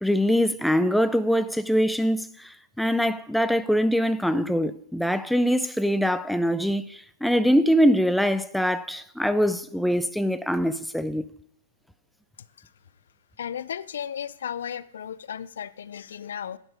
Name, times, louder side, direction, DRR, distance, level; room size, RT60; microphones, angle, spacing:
voice 1, 0.0-11.3, equal, ahead, 0.3 m, -23 dB
voice 2, 13.4-16.6, left 8 dB, 80° left, 0.4 m, -35 dB
10.5 x 5.2 x 4.9 m
hypercardioid pair, 140°, 0 cm